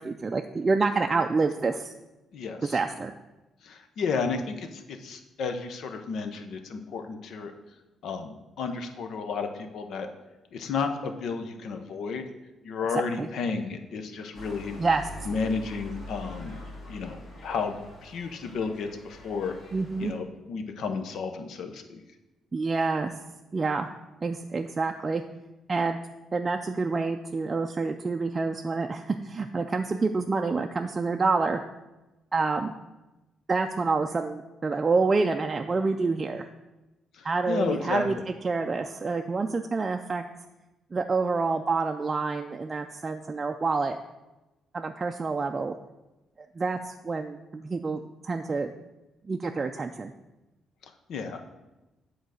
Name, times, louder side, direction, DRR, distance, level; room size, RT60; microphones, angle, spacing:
voice 1, 0.0-1.9 2.7-3.1 13.2-13.3 14.8-15.3 19.7-20.1 22.5-23.1 23.5-23.9 24.2-25.2 25.7-26.0 26.3-31.6 32.3-32.7 33.5-36.5 37.2-38.1 38.4-40.2 40.9-44.0 44.7-45.8 46.6-48.7 49.3-50.1, right 4 dB, 30° right, 4 dB, 0.4 m, -27 dB
voice 2, 2.3-2.8 3.6-7.5 8.0-10.1 10.5-12.2 12.6-14.8 15.3-16.6 16.9-17.2 17.4-19.6 20.0-22.0 37.1-38.2 50.8-51.4, left 5 dB, 70° left, 6 dB, 0.8 m, -32 dB
sound 1, 14.3-20.1, left 1 dB, 55° left, 2.3 m, -44 dB
8.1 x 3.9 x 6.3 m, 1.0 s
cardioid pair, 90°, 0 cm